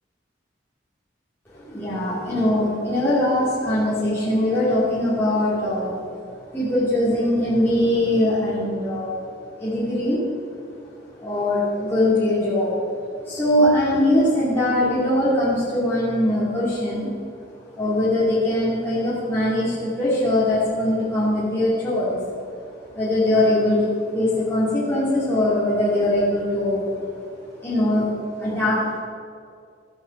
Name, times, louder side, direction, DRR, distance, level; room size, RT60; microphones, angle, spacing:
voice 1, 1.5-6.2 6.5-9.3 9.6-10.2 11.1-12.7 13.2-17.1 17.7-22.2 22.9-23.9 24.1-26.9 27.6-28.1 28.4-29.0, left 1 dB, 10° left, -10 dB, 2.5 m, -21 dB
14.0 x 5.6 x 7.1 m, 2.2 s
head